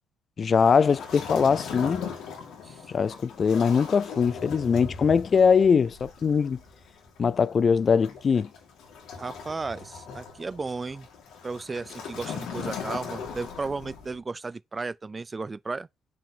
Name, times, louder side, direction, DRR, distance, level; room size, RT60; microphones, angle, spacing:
voice 1, 0.4-2.1 2.9-6.6 7.2-8.5, left 6 dB, 45° left, 0.3 m, -22 dB
Waves surf, 0.5-14.2, left 6 dB, 80° left, 2.5 m, -39 dB
voice 2, 9.2-11.1 11.4-15.9, right 3 dB, 25° right, 0.4 m, -34 dB
6.1 x 4.9 x 4.4 m
cardioid pair, 90°, 0 cm